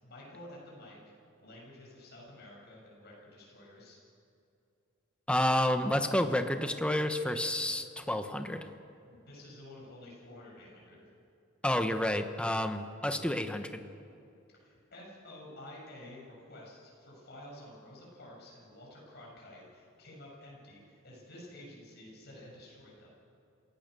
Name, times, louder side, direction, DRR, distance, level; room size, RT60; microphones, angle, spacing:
voice 1, 0.0-4.0 9.0-11.0 14.5-23.1, left 1 dB, 50° left, -3 dB, 7.8 m, -51 dB
voice 2, 5.3-8.7 11.6-13.8, left 1 dB, 5° left, 7 dB, 1.0 m, -30 dB
27.5 x 17.0 x 6.8 m, 2.6 s
head